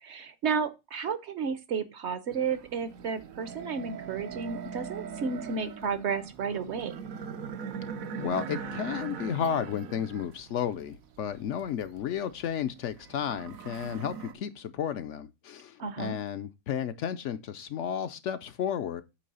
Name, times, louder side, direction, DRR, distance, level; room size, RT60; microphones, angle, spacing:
voice 1, 0.0-6.9 15.8-16.1, right 6 dB, 60° right, 0.9 m, -32 dB
sound 1, 2.3-14.3, right 7 dB, 80° right, 1.2 m, -41 dB
voice 2, 8.2-19.0, left 8 dB, 65° left, 0.8 m, -33 dB
8.5 x 3.2 x 5.4 m
omnidirectional pair, 1.5 m